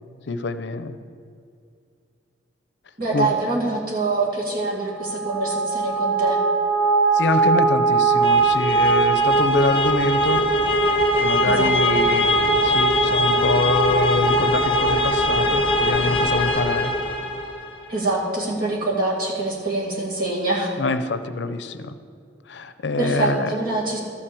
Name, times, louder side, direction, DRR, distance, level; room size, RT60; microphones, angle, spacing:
voice 1, 0.3-0.9 3.1-3.3 7.1-10.4 11.2-16.9 20.8-22.0 22.5-23.5, left 3 dB, 70° left, 11 dB, 0.6 m, -25 dB
voice 2, 3.0-6.4 11.4-12.0 17.9-20.7 23.0-24.0, right 2 dB, 50° right, -4 dB, 2.3 m, -25 dB
sound 1, 4.9-17.7, right 2 dB, 30° left, 0.9 m, -20 dB
13.0 x 5.8 x 7.0 m, 2.4 s
head